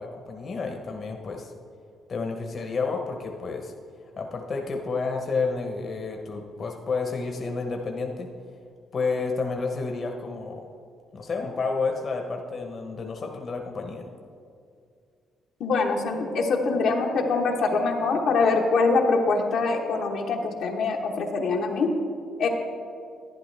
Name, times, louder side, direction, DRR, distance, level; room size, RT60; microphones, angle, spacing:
voice 1, 0.0-1.5 2.1-3.7 4.2-8.3 8.9-10.6 11.1-14.0, left 4 dB, 45° left, 2 dB, 1.0 m, -30 dB
voice 2, 15.6-21.9 22.4-22.5, left 4 dB, 75° left, 0 dB, 1.1 m, -24 dB
11.5 x 10.0 x 3.4 m, 2.3 s
cardioid pair, 90°, 0 cm